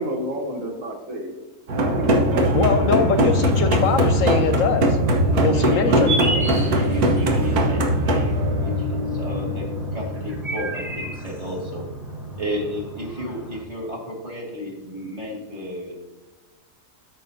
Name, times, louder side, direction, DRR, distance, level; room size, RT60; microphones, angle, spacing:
voice 1, 0.0-1.3 1.8-3.1, equal, 60° right, 2 dB, 1.5 m, -30 dB
sound 1, 1.7-13.5, equal, 90° right, 1.6 m, -21 dB
voice 2, 2.5-5.0 5.4-6.1, left 6 dB, 70° left, 8 dB, 1.0 m, -22 dB
sound 2, 2.9-13.6, right 2 dB, ahead, 1.1 m, -35 dB
voice 3, 5.5-11.9 12.3-15.9, left 1 dB, 25° right, -3 dB, 2.4 m, -32 dB
13.0 x 6.1 x 2.7 m, 1.2 s
omnidirectional pair, 1.5 m